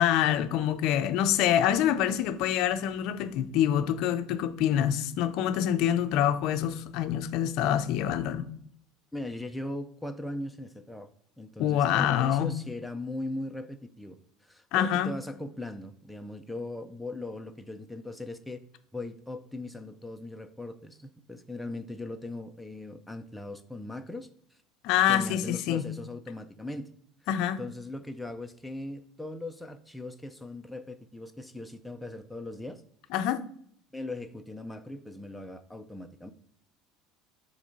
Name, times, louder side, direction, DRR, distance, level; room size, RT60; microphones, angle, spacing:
voice 1, 0.0-8.4 11.6-12.5 14.7-15.1 24.8-25.8 27.3-27.6 33.1-33.4, left 10 dB, 60° left, 0.5 m, -26 dB
voice 2, 9.1-11.1 11.4-14.2 14.4-18.6 18.9-24.3 25.1-26.9 27.6-32.8 33.9-36.3, left 2 dB, ahead, 0.5 m, -39 dB
6.8 x 3.2 x 5.3 m
cardioid pair, 135°, 0 cm